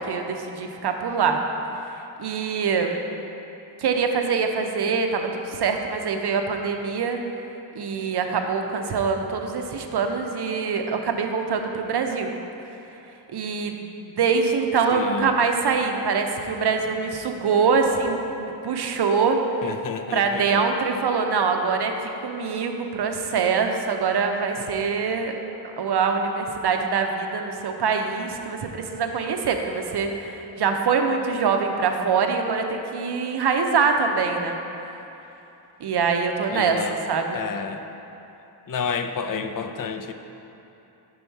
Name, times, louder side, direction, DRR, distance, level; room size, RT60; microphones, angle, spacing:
voice 1, 0.0-1.4 2.2-3.0 3.8-7.2 7.8-12.3 13.3-19.4 20.1-21.9 22.2-25.4 25.6-34.6 35.8-36.8 37.1-37.4, right 5 dB, 60° right, 4 dB, 0.6 m, -24 dB
voice 2, 14.9-15.4 19.6-20.6 36.5-37.0 37.3-37.9 38.7-40.1, left 6 dB, 50° left, 7 dB, 0.5 m, -30 dB
5.5 x 5.4 x 4.5 m, 2.9 s
cardioid pair, 70°, 45 cm